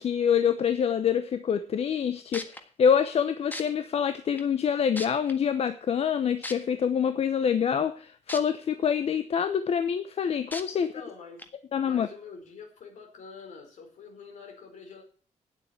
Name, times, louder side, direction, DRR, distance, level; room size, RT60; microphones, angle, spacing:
voice 1, 0.0-10.9 11.7-12.1, left 7 dB, 55° left, 11 dB, 0.8 m, -26 dB
sound 1, 2.0-2.1 2.3-2.6 3.5-3.6 4.4-4.5 4.9-5.3 6.4-6.5 8.3-8.4 8.9-9.0 10.5-10.6 11.4-11.5, left 1 dB, 15° left, 1.6 m, -35 dB
voice 2, 10.7-11.5 11.8-15.0, left 5 dB, 75° left, 3 dB, 4.6 m, -46 dB
9.8 x 7.9 x 8.3 m, 0.41 s
cardioid pair, 120°, 13 cm